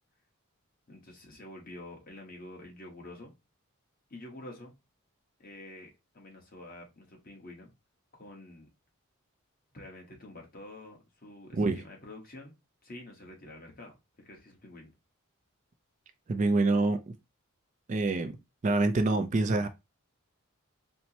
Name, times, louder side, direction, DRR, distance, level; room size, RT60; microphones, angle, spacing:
voice 1, 0.9-3.3 4.1-4.7 5.4-7.7 8.1-8.7 9.7-12.5 12.8-14.0 14.2-14.9, left 1 dB, 40° left, 1.1 m, -48 dB
voice 2, 16.3-17.2 17.9-18.4 18.6-19.7, right 2 dB, 35° right, 0.3 m, -26 dB
4.4 x 2.0 x 2.7 m
head